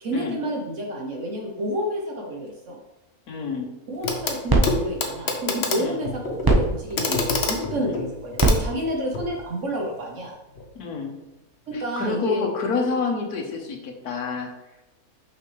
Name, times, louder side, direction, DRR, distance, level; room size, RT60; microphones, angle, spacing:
voice 1, 0.0-2.8 3.9-10.3 11.7-12.5, equal, 60° right, 0 dB, 1.2 m, -29 dB
voice 2, 3.3-3.7 5.7-6.0 7.7-8.0 10.7-11.1 11.7-14.5, left 4 dB, 80° left, 3 dB, 1.6 m, -28 dB
sound 1, 3.9-10.3, right 2 dB, 20° right, 0.6 m, -27 dB
Clock, 4.0-4.4 4.6-9.3 10.6-10.7, left 3 dB, 50° left, 1.0 m, -27 dB
6.0 x 5.9 x 3.2 m, 0.95 s
omnidirectional pair, 1.6 m